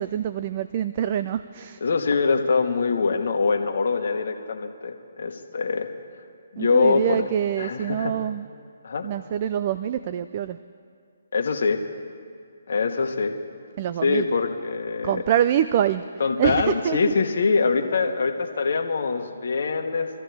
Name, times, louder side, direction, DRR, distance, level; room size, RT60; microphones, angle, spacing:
voice 1, 0.0-1.8 6.6-8.5 9.0-10.6 13.8-14.3 15.0-16.1 16.4-17.1, right 10 dB, 40° right, 13 dB, 0.4 m, -25 dB
voice 2, 1.8-5.9 6.5-7.2 7.6-8.1 8.8-9.1 11.3-11.8 12.7-13.4 14.0-15.2 16.2-20.1, left 4 dB, 65° left, 4 dB, 1.2 m, -23 dB
24.0 x 14.0 x 3.4 m, 2.2 s
hypercardioid pair, 150°, 0 cm